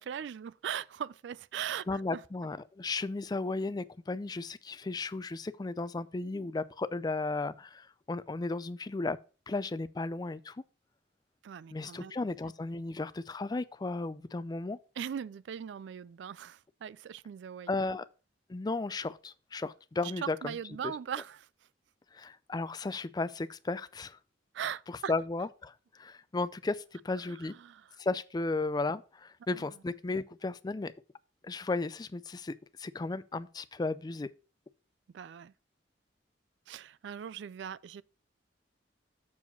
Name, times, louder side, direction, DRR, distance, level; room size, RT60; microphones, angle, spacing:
voice 1, 0.0-2.2 11.4-12.2 15.0-18.0 20.0-21.5 24.5-25.1 27.1-28.0 29.5-29.8 35.1-35.5 36.7-38.0, right 8 dB, 70° right, 0.3 m, -40 dB
voice 2, 1.9-9.2 9.5-10.6 11.7-14.8 17.7-18.0 18.5-20.5 22.1-24.2 25.1-27.5 28.0-30.9 31.4-34.3, left 3 dB, 20° left, 0.4 m, -35 dB
7.2 x 4.7 x 5.8 m
head